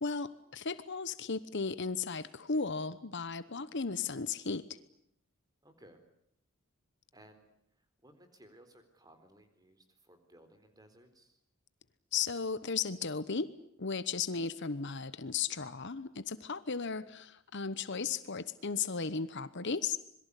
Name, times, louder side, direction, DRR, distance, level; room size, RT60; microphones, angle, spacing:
voice 1, 0.0-4.6 12.1-13.5 13.8-20.0, left 5 dB, 55° left, 15 dB, 1.0 m, -35 dB
voice 2, 5.6-6.0 7.1-7.5 7.7-11.4, right 1 dB, 20° right, 8 dB, 4.0 m, -60 dB
26.5 x 22.5 x 8.4 m, 0.72 s
head